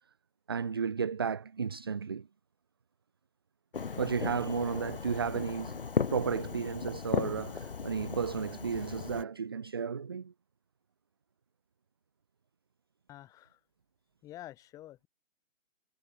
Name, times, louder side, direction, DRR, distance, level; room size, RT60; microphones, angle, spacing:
voice 1, 0.5-2.3 4.0-10.3, right 6 dB, 20° right, 1.0 m, -33 dB
Fireworks, 3.7-9.2, left 5 dB, 45° left, 2.8 m, -36 dB
voice 2, 13.1-13.6 14.2-15.1, left 14 dB, 10° left, 6.3 m, -48 dB
figure-of-eight pair, 165°, 39 cm